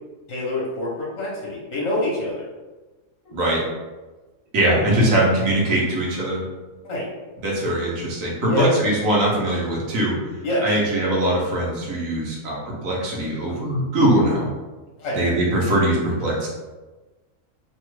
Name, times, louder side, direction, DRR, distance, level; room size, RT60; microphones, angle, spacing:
voice 1, 0.3-2.4 6.8-7.1 8.4-8.7 10.4-10.8 15.0-15.2, left 1 dB, 60° left, -5 dB, 1.0 m, -26 dB
voice 2, 3.3-3.6 4.5-6.4 7.4-10.3 10.6-14.5 15.1-16.5, right 1 dB, 75° right, -4 dB, 1.2 m, -21 dB
3.0 x 2.3 x 3.1 m, 1.2 s
omnidirectional pair, 1.4 m